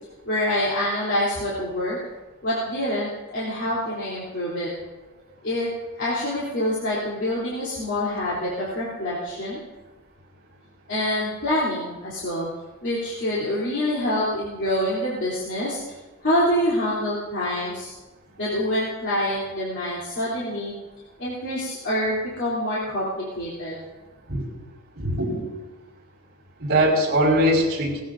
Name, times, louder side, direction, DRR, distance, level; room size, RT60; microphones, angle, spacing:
voice 1, 0.3-2.0 2.4-4.7 5.4-5.7 6.0-9.6 10.9-12.5 12.8-15.8 16.2-17.9 18.4-20.7 21.2-23.8, left 1 dB, 55° left, -8 dB, 3.5 m, -26 dB
voice 2, 25.0-25.4 26.6-28.0, right 1 dB, 50° right, -5 dB, 5.2 m, -21 dB
19.5 x 15.0 x 2.7 m, 1.2 s
head